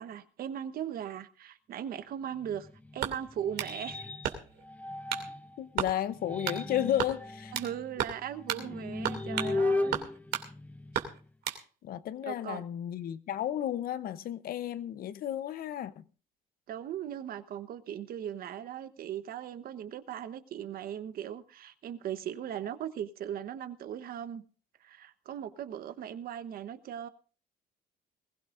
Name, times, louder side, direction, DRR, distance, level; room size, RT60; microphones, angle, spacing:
voice 1, 0.0-2.7 2.9-4.1 7.5-10.0 12.2-12.6 16.7-24.4 24.8-27.1, right 9 dB, 60° right, 1.1 m, -38 dB
sound 1, 2.4-5.6 6.1-11.3, left 2 dB, 10° left, 0.7 m, -36 dB
sound 2, 3.0-3.8 4.2-4.7 5.1-5.3 5.8-6.0 6.5-6.6 7.0-7.7 8.0-8.2 8.5-8.7 9.0-9.6 9.9-10.5 10.9-11.6, right 10 dB, 75° right, 2.7 m, -33 dB
voice 2, 5.6-7.5 11.8-16.0, left 11 dB, 60° left, 0.8 m, -33 dB
21.0 x 16.0 x 2.6 m
cardioid pair, 110°, 17 cm